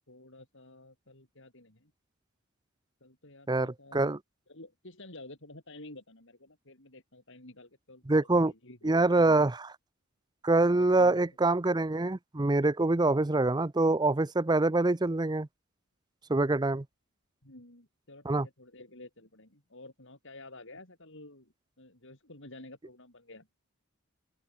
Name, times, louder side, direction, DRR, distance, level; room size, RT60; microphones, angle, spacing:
voice 1, 0.0-1.9 3.0-4.1 4.5-9.4 10.7-11.3 17.4-23.5, left 2 dB, 60° left, 6.3 m, -51 dB
voice 2, 3.5-4.2 8.1-8.5 8.8-9.7 10.4-15.5 16.3-16.8 18.3-18.5, right 2 dB, 20° right, 0.6 m, -25 dB
open air
head